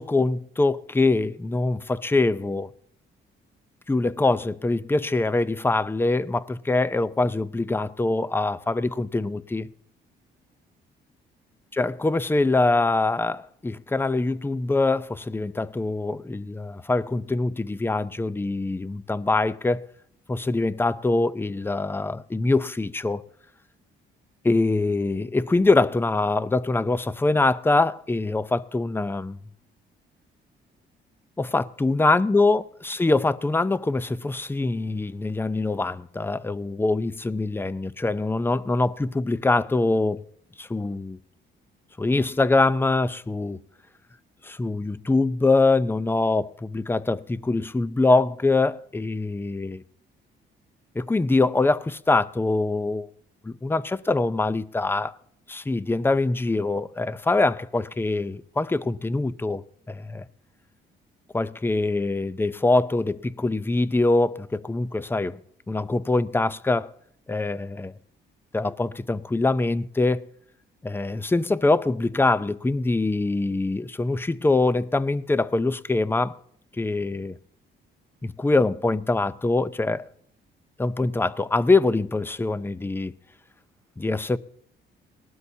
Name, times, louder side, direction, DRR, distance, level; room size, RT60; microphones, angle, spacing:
voice 1, 0.0-2.7 3.9-9.7 11.7-19.8 20.3-23.3 24.4-29.4 31.4-40.2 40.6-41.2 42.0-43.6 44.4-49.8 51.0-53.1 53.4-55.2 55.5-60.2 61.3-65.4 65.7-66.9 67.3-67.9 68.5-70.3 70.8-76.4 76.8-77.4 78.2-80.1 80.8-83.1 84.0-84.4, left 2 dB, 10° left, 0.6 m, -24 dB
19.0 x 12.5 x 2.7 m
cardioid pair, 90°, 20 cm